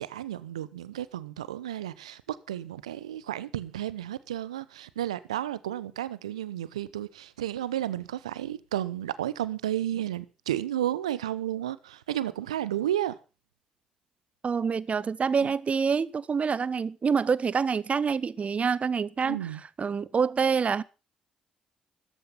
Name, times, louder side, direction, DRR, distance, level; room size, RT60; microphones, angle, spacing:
voice 1, 0.0-13.2 15.4-15.5 19.2-19.6, right 12 dB, 80° right, 0.8 m, -32 dB
voice 2, 14.4-19.4 19.8-20.8, right 6 dB, 40° right, 1.0 m, -26 dB
14.0 x 13.0 x 5.8 m
figure-of-eight pair, 45°, 3 cm